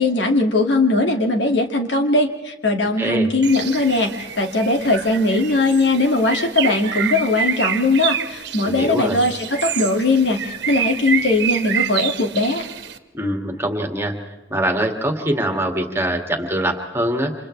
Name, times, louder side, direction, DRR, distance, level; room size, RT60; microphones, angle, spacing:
voice 1, 0.0-4.1 4.4-12.6, left 2 dB, 65° left, 3 dB, 2.4 m, -19 dB
voice 2, 3.0-3.3 8.6-9.2 13.1-14.1 14.5-17.3, right 1 dB, 15° right, 3 dB, 2.3 m, -23 dB
Bird, 3.4-13.0, right 8 dB, 60° right, 1.4 m, -27 dB
29.5 x 27.0 x 3.4 m, 1.1 s
head